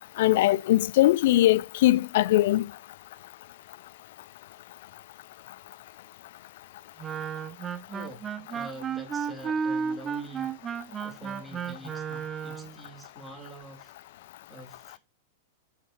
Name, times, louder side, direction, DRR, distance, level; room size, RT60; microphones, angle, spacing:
voice 1, 0.2-2.7, left 15 dB, 60° left, 0.4 m, -21 dB
Wind instrument woodwind instrument, 7.0-12.8, right 6 dB, 25° right, 0.6 m, -33 dB
voice 2, 7.9-13.9 14.5-15.0, right 1 dB, 5° right, 3.4 m, -46 dB
14.0 x 5.9 x 2.9 m
hypercardioid pair, 100°, 0 cm